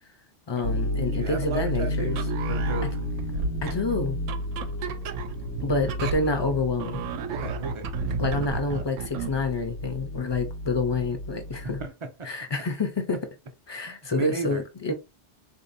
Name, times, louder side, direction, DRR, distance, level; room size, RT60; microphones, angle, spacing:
voice 1, 0.5-2.2 3.6-4.2 5.6-7.0 8.0-11.8 12.2-13.2 13.7-14.9, left 3 dB, 30° left, 0.5 m, -28 dB
sound 1, 0.6-11.9, left 1 dB, 90° left, 1.0 m, -32 dB
voice 2, 1.1-2.9 7.3-7.9 11.8-12.3 13.9-14.6, right 3 dB, 40° right, 0.4 m, -34 dB
sound 2, 2.1-9.4, right 5 dB, 90° right, 0.9 m, -33 dB
3.9 x 2.7 x 2.6 m
omnidirectional pair, 1.2 m